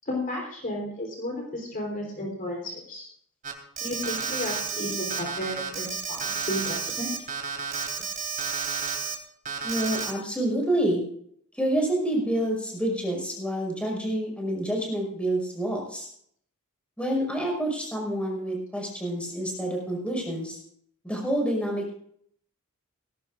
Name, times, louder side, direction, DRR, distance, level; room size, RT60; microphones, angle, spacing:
voice 1, 0.1-3.0 3.8-7.1, left 1 dB, 40° left, 0 dB, 3.8 m, -33 dB
Alarm, 3.4-9.2 9.5-10.1, right 6 dB, 40° right, 2.9 m, -31 dB
voice 2, 9.6-11.0 11.5-16.1 17.0-20.6 21.0-21.9, right 1 dB, 5° left, -1 dB, 5.5 m, -28 dB
19.5 x 17.0 x 2.5 m, 0.65 s
head